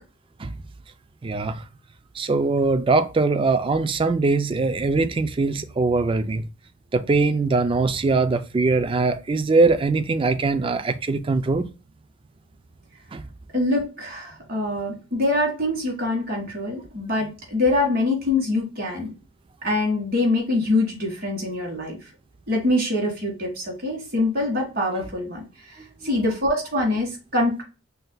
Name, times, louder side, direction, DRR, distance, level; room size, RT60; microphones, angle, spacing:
voice 1, 1.2-1.6 2.2-6.5 6.9-11.7 13.1-13.2 25.8-26.1, right 3 dB, 25° right, 0.3 m, -22 dB
voice 2, 13.5-19.1 19.6-22.0 22.5-25.8 26.0-27.6, left 2 dB, 50° right, 1.8 m, -24 dB
5.6 x 2.7 x 2.2 m
head